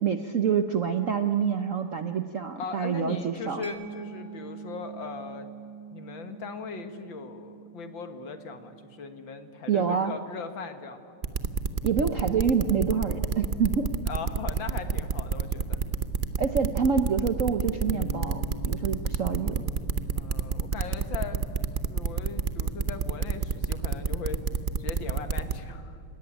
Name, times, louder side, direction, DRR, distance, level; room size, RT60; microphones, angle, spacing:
voice 1, 0.0-3.6 9.7-10.1 11.8-13.9 16.4-19.6, right 6 dB, 55° right, 8 dB, 0.9 m, -27 dB
voice 2, 2.6-5.5 5.9-11.2 14.1-15.8 20.2-21.4 21.8-24.4 24.8-26.0, left 5 dB, 60° left, 8 dB, 2.2 m, -39 dB
Mallet percussion, 3.6-11.0, right 7 dB, 15° right, 2.1 m, -46 dB
sound 1, 11.2-25.5, right 5 dB, 80° right, 0.4 m, -28 dB
Bass guitar, 17.9-24.1, left 5 dB, 20° left, 2.1 m, -46 dB
29.5 x 17.5 x 10.0 m, 2.5 s
omnidirectional pair, 2.4 m